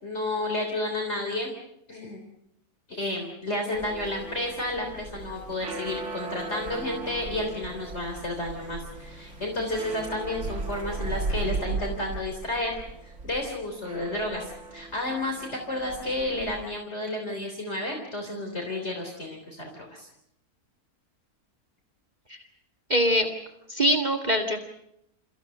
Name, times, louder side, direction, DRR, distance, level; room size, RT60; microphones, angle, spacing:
voice 1, 0.0-1.5 1.9-2.2 2.9-12.7 13.0-20.1, left 1 dB, 45° left, 2 dB, 3.9 m, -31 dB
sound 1, 3.7-16.7, right 3 dB, 50° right, 2.2 m, -37 dB
voice 2, 22.9-23.3 23.7-24.6, equal, 30° right, 4 dB, 1.9 m, -23 dB
28.0 x 15.5 x 7.8 m, 0.79 s
omnidirectional pair, 1.6 m